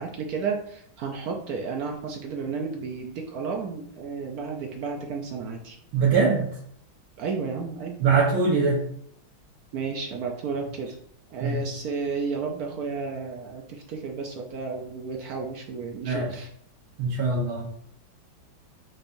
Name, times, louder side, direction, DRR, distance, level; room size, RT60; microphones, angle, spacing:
voice 1, 0.0-5.8 7.2-8.0 9.7-10.9 11.3-16.5, right 5 dB, 70° right, 2 dB, 0.9 m, -32 dB
voice 2, 5.9-6.5 8.0-8.8 11.4-11.6 16.0-16.3 17.0-17.7, right 4 dB, 90° right, -6 dB, 1.8 m, -22 dB
5.8 x 3.3 x 2.6 m, 0.65 s
omnidirectional pair, 2.2 m